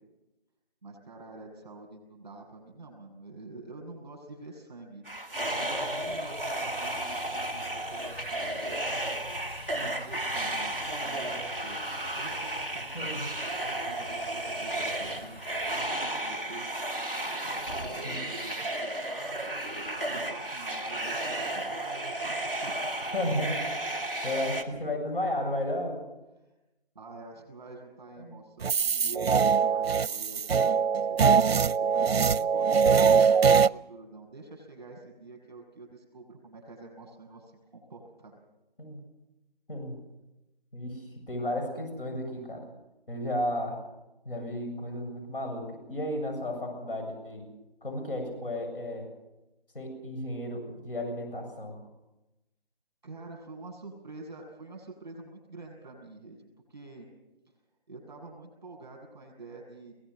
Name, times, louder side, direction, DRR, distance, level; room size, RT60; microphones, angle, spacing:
voice 1, 0.8-5.0 5.6-9.3 9.8-10.7 11.0-11.8 12.1-16.7 17.2-19.7 20.1-22.8 23.0-23.1 26.4-26.6 26.9-38.4 53.0-56.4 56.7-57.1 57.5-57.6 57.9-60.0, right 3 dB, 45° right, 0 dB, 7.6 m, -47 dB
sound 1, 5.0-24.6, right 1 dB, 10° left, 1.1 m, -33 dB
sound 2, 5.4-16.0, left 2 dB, 80° left, 4.0 m, -49 dB
voice 2, 12.9-13.3 18.0-18.3 23.1-23.8 24.2-26.0 28.2-28.3 38.8-39.0 39.7-40.0 40.7-42.7 43.1-43.8 44.2-47.5 47.8-49.1 49.7-51.8, left 1 dB, 65° left, 3 dB, 7.6 m, -33 dB
sound 3, 28.6-33.7, right 6 dB, 85° right, 0.6 m, -22 dB
22.5 x 19.0 x 6.6 m, 0.96 s
figure-of-eight pair, 175°, 30 cm